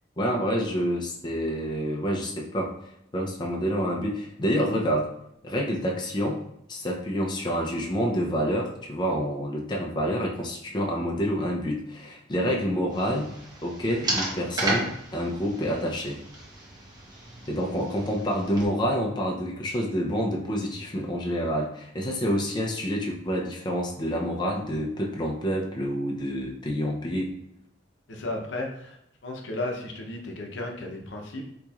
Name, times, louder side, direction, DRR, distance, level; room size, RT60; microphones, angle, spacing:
voice 1, 0.2-2.7 3.1-5.1 5.4-13.3 13.6-16.2 17.5-27.3, equal, 25° left, -1 dB, 0.5 m, -28 dB
sound 1, 12.9-18.7, right 2 dB, 20° right, 0.8 m, -34 dB
voice 2, 28.1-29.0 29.2-31.5, left 2 dB, 90° left, 1 dB, 0.7 m, -34 dB
4.1 x 2.9 x 2.4 m, 0.76 s
head